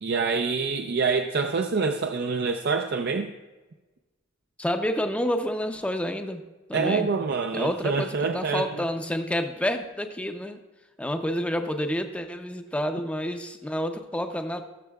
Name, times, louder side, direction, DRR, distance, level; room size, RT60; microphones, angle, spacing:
voice 1, 0.0-3.3 6.7-8.8, right 4 dB, 55° right, 5 dB, 0.5 m, -26 dB
voice 2, 4.6-6.4 6.7-7.1 7.5-10.6 11.0-14.6, equal, 5° left, 6 dB, 0.6 m, -29 dB
19.5 x 6.7 x 2.3 m, 1.2 s
head